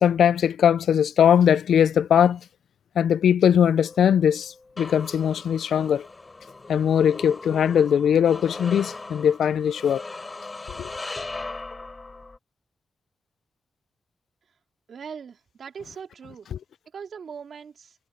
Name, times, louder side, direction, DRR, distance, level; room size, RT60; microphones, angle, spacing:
voice 1, 0.0-2.4 3.0-6.1 6.7-10.0 10.8-10.9 16.5-16.6, left 8 dB, 80° left, 0.3 m, -20 dB
sound 1, 3.8-12.4, left 3 dB, 20° left, 6.3 m, -39 dB
voice 2, 14.9-16.5 16.9-18.0, right 6 dB, 60° right, 3.6 m, -40 dB
wide cardioid pair, 150°, 0 cm